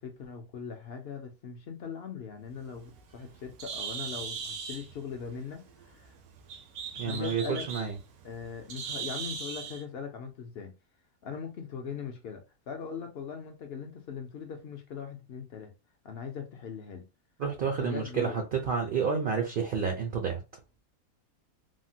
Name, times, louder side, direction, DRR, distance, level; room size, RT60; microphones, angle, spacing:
voice 1, 0.0-6.2 7.0-7.7 8.2-10.7 11.2-15.7 16.0-17.1 17.8-18.4, left 6 dB, 70° left, 0.6 m, -40 dB
Bird, 2.5-9.8, right 6 dB, 85° right, 1.1 m, -40 dB
voice 2, 7.0-7.9 17.4-20.4, right 6 dB, 65° right, 0.5 m, -30 dB
3.4 x 2.1 x 2.6 m
omnidirectional pair, 1.6 m